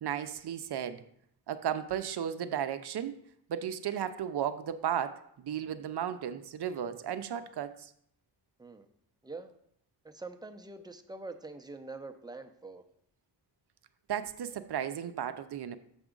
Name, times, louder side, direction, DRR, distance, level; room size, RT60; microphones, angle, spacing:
voice 1, 0.0-1.0 1.5-3.2 3.5-7.9 14.1-15.8, right 9 dB, 60° right, 0.6 m, -34 dB
voice 2, 10.0-12.8, right 3 dB, 10° right, 0.7 m, -44 dB
7.0 x 6.0 x 3.8 m
cardioid pair, 90°, 44 cm